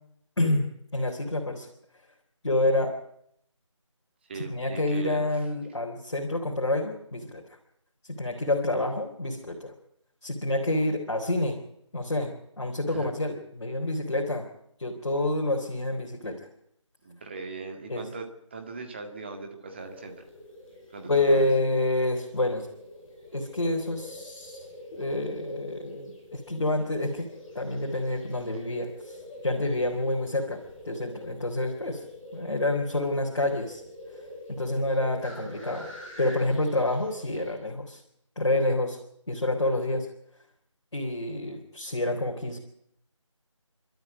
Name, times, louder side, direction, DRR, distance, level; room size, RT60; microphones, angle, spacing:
voice 1, 0.9-1.7 2.4-2.9 4.3-7.4 8.1-9.7 10.2-11.6 11.9-14.5 14.8-16.5 17.9-18.1 21.1-22.7 23.3-24.7 24.9-27.3 27.6-30.6 30.8-32.0 32.3-33.8 34.5-35.9 36.2-38.0 38.4-39.0 39.3-40.1 40.9-42.6, left 2 dB, 55° left, 0 dB, 3.7 m, -28 dB
voice 2, 4.3-5.3 12.9-13.1 17.0-20.2 20.9-21.5, right 4 dB, 20° right, 4 dB, 1.9 m, -39 dB
sound 1, 19.8-37.5, left 1 dB, 5° left, 6.6 m, -45 dB
29.5 x 12.5 x 8.2 m, 0.73 s
figure-of-eight pair, 165°, 17 cm